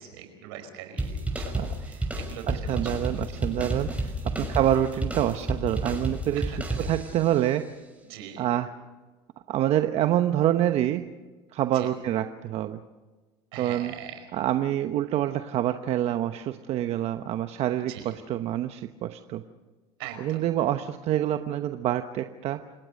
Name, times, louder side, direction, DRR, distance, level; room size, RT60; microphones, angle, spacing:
voice 1, 0.0-3.4 4.3-4.6 6.4-6.9 8.0-8.5 11.7-11.9 13.5-14.3 17.9-18.1 20.0-20.4, right 9 dB, 85° right, 7 dB, 5.1 m, -42 dB
sound 1, 1.0-7.3, right 1 dB, 10° right, 6.1 m, -31 dB
voice 2, 2.5-4.1 4.4-6.4 6.9-7.6 8.4-8.7 9.5-11.0 11.5-12.8 13.6-13.9 14.3-19.4 20.2-22.6, right 12 dB, 55° right, 8 dB, 1.0 m, -26 dB
29.5 x 18.0 x 6.5 m, 1.3 s
supercardioid pair, 90°, 13 cm